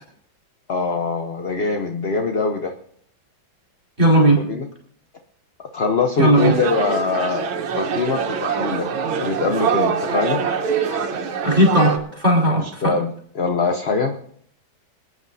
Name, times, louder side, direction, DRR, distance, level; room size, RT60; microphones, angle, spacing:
voice 1, 0.7-2.7 4.2-4.7 5.6-7.4 7.7-8.9 9.2-10.4 12.6-14.1, left 4 dB, 50° left, 5 dB, 0.7 m, -23 dB
voice 2, 4.0-4.4 6.2-6.5 11.4-12.9, right 1 dB, 25° right, -1 dB, 4.7 m, -16 dB
sound 1, 6.4-12.0, right 6 dB, 90° right, 1.9 m, -24 dB
26.5 x 9.5 x 2.7 m, 0.62 s
omnidirectional pair, 2.1 m